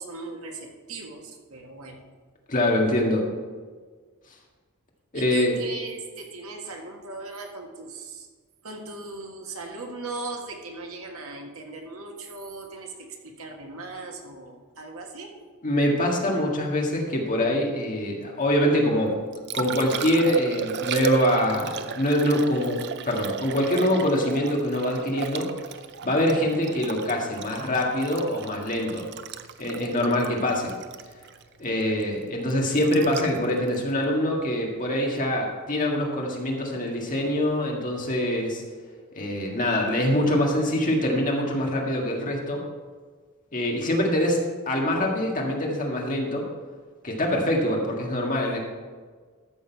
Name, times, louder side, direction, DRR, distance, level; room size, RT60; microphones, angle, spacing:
voice 1, 0.0-2.0 5.1-8.3 8.6-15.4, right 3 dB, 75° right, 2 dB, 1.6 m, -38 dB
voice 2, 2.5-3.3 5.1-5.6 15.6-19.2 19.5-25.5 26.0-29.0 29.6-30.7 31.6-38.6 39.1-42.6 43.5-46.5 47.0-48.6, left 1 dB, 40° left, 0 dB, 1.8 m, -24 dB
Liquid, 19.1-35.2 38.0-38.1, right 8 dB, 50° right, 0.5 m, -35 dB
13.5 x 6.6 x 4.6 m, 1.5 s
head